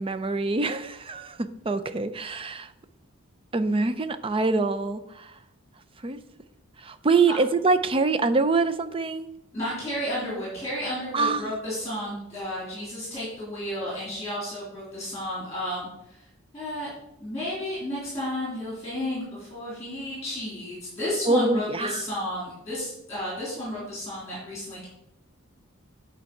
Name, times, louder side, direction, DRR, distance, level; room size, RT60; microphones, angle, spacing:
voice 1, 0.0-2.7 3.5-5.3 6.0-6.2 6.8-9.3 11.1-11.5 21.3-22.0, right 3 dB, 25° right, 0.5 m, -25 dB
voice 2, 9.5-15.9 16.5-16.9 17.2-24.9, left 1 dB, 15° left, 3.3 m, -32 dB
8.6 x 4.6 x 6.5 m
head